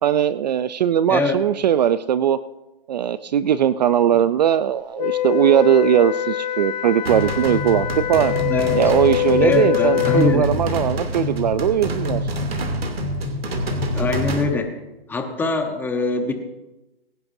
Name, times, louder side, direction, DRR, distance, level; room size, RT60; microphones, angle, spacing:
voice 1, 0.0-2.4 2.9-8.3 8.7-12.2, right 10 dB, 45° right, 15 dB, 0.5 m, -19 dB
voice 2, 1.1-1.4 8.5-8.8 9.4-10.6 13.9-14.8 15.1-16.3, left 3 dB, 5° left, 5 dB, 1.0 m, -23 dB
Wind instrument woodwind instrument, 5.0-10.5, left 13 dB, 45° left, 0.4 m, -24 dB
sound 1, 7.1-14.4, equal, 80° right, 2.8 m, -26 dB
23.0 x 11.0 x 2.7 m, 1.0 s
hypercardioid pair, 150°, 30 cm